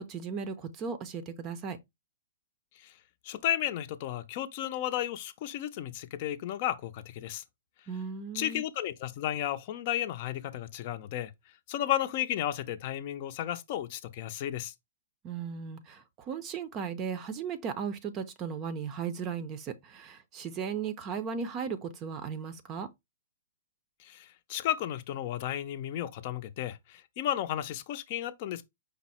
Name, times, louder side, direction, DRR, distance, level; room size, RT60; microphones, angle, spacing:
voice 1, 0.0-1.8 7.9-8.6 15.2-22.9, right 6 dB, 30° right, 0.5 m, -36 dB
voice 2, 3.2-7.4 8.3-11.3 11.7-14.7 24.0-28.6, left 12 dB, 45° left, 0.6 m, -33 dB
5.2 x 2.0 x 4.2 m
hypercardioid pair, 130°, 0 cm